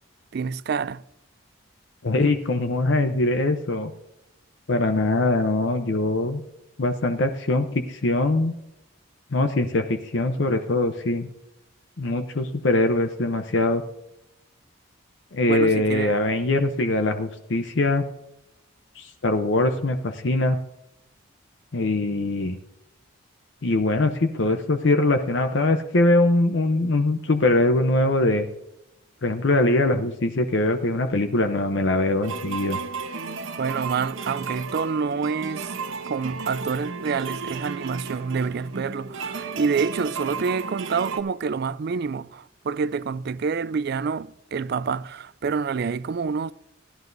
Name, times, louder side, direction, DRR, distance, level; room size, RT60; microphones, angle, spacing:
voice 1, 0.3-1.0 15.5-16.2 33.6-35.7 36.1-46.5, right 5 dB, 50° right, 0.3 m, -27 dB
voice 2, 2.0-3.9 4.7-6.4 6.8-8.5 9.3-11.3 12.0-13.8 15.3-18.0 19.0-20.6 21.7-22.6 23.6-28.5 29.2-32.8, left 2 dB, 60° left, 0.7 m, -22 dB
sound 1, 32.2-41.2, right 4 dB, 80° right, 1.0 m, -34 dB
16.0 x 11.0 x 2.6 m
head